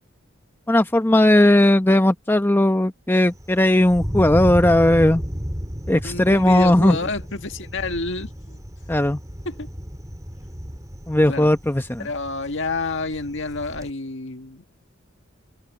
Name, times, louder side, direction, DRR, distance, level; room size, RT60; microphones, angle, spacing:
voice 1, 0.7-5.2 5.9-7.0 8.9-9.2 11.1-12.1, left 1 dB, 10° left, 0.8 m, -17 dB
Thunder, 3.3-13.9, equal, 15° right, 4.4 m, -32 dB
voice 2, 5.9-8.6 9.5-9.7 11.3-11.5 12.0-14.6, left 3 dB, 65° left, 1.8 m, -29 dB
head